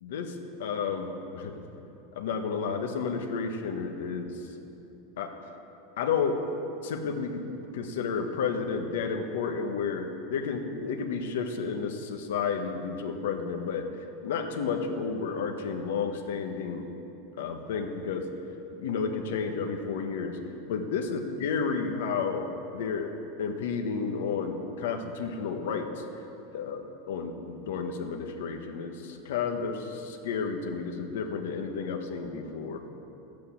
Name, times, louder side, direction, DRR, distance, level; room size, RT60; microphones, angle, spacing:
voice 1, 0.0-1.6 2.1-4.5 5.2-5.3 6.0-6.4 6.8-7.4 7.7-16.9 17.4-18.3 18.7-20.4 20.7-23.1 23.4-26.0 26.5-32.8, left 5 dB, 80° left, 5 dB, 1.3 m, -31 dB
11.5 x 8.5 x 8.5 m, 3.0 s
supercardioid pair, 175°, 0 cm